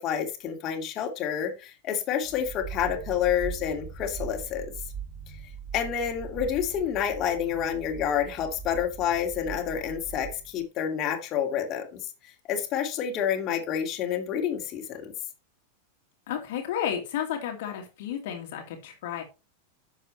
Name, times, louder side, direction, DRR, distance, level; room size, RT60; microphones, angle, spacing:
voice 1, 0.0-4.7 5.7-15.1, left 8 dB, 35° left, 2.5 m, -29 dB
sound 1, 2.2-10.6, right 6 dB, ahead, 2.8 m, -41 dB
voice 2, 16.3-19.2, left 9 dB, 50° left, 2.4 m, -32 dB
11.5 x 7.3 x 3.3 m
figure-of-eight pair, 90°, 0 cm